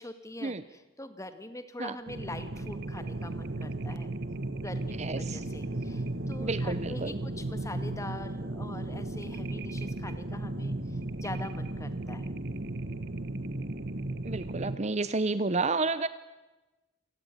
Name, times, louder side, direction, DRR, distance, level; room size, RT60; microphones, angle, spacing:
voice 1, 0.0-4.1 4.6-12.3, left 1 dB, 15° left, 10 dB, 1.9 m, -43 dB
sound 1, 2.1-14.8, right 2 dB, 55° right, 1.3 m, -35 dB
voice 2, 5.0-5.4 6.4-7.2 14.2-16.1, right 3 dB, 35° right, 14 dB, 0.8 m, -30 dB
27.5 x 18.0 x 9.8 m, 1.1 s
head